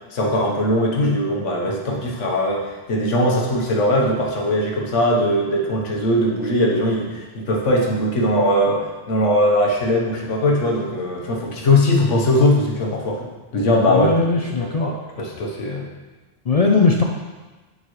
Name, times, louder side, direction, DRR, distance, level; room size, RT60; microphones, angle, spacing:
voice 1, 0.1-13.3 13.5-14.1 14.6-15.9, left 1 dB, 85° left, -1 dB, 1.4 m, -20 dB
voice 2, 13.9-14.9 16.5-17.0, left 4 dB, 50° left, 1 dB, 0.4 m, -18 dB
8.6 x 5.4 x 3.1 m, 1.2 s
omnidirectional pair, 1.2 m